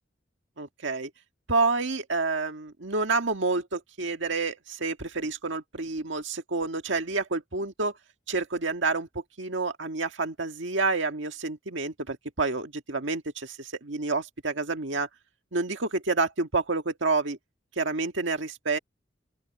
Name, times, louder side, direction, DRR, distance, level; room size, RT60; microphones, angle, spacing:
voice 1, 0.6-1.1 1.5-7.9 8.3-9.1 9.4-15.1 15.5-17.4 17.8-18.8, right 3 dB, 75° right, 1.8 m, -29 dB
open air
head